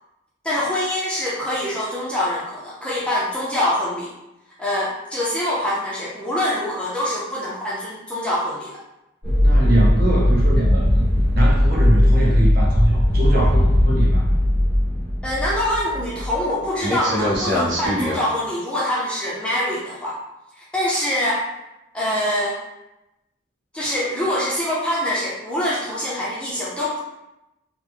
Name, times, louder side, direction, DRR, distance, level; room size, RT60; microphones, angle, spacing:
voice 1, 0.4-4.1 4.6-8.8 15.2-20.2 20.7-21.4 21.9-22.6 23.7-27.0, left 1 dB, 5° left, -7 dB, 0.5 m, -24 dB
sound 1, 9.2-16.5 16.8-18.2, left 1 dB, 65° right, 1.0 m, -18 dB
voice 2, 9.4-11.1 11.3-14.4, right 1 dB, 45° right, -4 dB, 0.7 m, -23 dB
3.3 x 2.0 x 3.3 m, 0.92 s
head